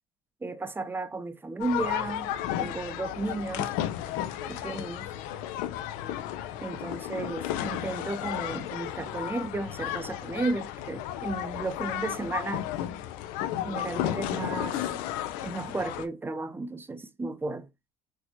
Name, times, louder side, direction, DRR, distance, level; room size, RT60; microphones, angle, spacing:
voice 1, 0.4-2.3 2.6-3.7 4.5-5.1 6.6-12.7 13.6-14.8 15.4-17.7, right 2 dB, 15° right, 0.5 m, -34 dB
sound 1, 1.6-16.1, left 12 dB, 85° left, 0.4 m, -33 dB
4.3 x 2.1 x 2.7 m
cardioid pair, 100°, 14 cm